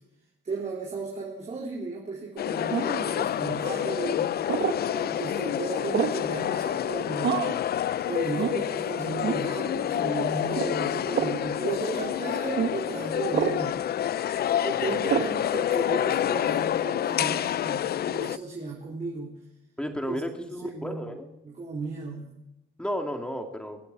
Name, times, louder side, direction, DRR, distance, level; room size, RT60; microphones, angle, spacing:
voice 1, 0.4-4.3 4.9-7.4 8.0-13.8 14.6-19.4 20.1-21.0 21.4-22.4, right 3 dB, 35° right, -4 dB, 4.1 m, -35 dB
sound 1, 2.4-18.4, left 11 dB, 55° left, 0.5 m, -28 dB
sound 2, 2.7-3.1 4.5-4.8 5.9-6.3 7.2-7.6 8.4-8.6 9.2-9.4 10.5-10.7 11.1-11.4 12.6-12.7 13.3-13.6 15.1-15.4, right 8 dB, 60° right, 1.1 m, -27 dB
voice 2, 19.8-21.3 22.8-23.8, equal, 5° left, 4 dB, 2.4 m, -33 dB
22.0 x 8.3 x 4.1 m, 0.87 s
cardioid pair, 90°, 20 cm